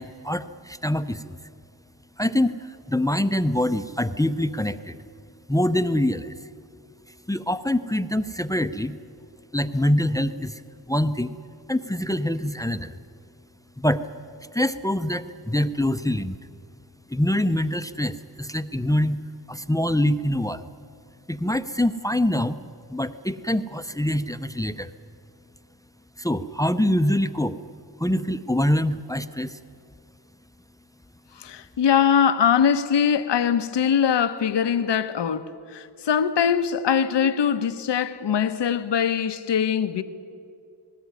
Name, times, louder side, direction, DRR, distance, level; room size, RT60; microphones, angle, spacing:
voice 1, 0.0-1.4 2.2-5.0 5.5-6.3 7.3-8.9 9.5-10.6 10.9-11.4 11.7-13.0 13.8-14.0 14.5-16.4 17.1-19.2 19.5-20.7 21.3-22.6 22.9-24.9 26.2-27.6 28.0-29.6, left 1 dB, 10° left, 0.7 m, -24 dB
voice 2, 31.4-40.0, left 8 dB, 75° left, 1.1 m, -22 dB
19.0 x 18.5 x 9.6 m
cardioid pair, 85°, 42 cm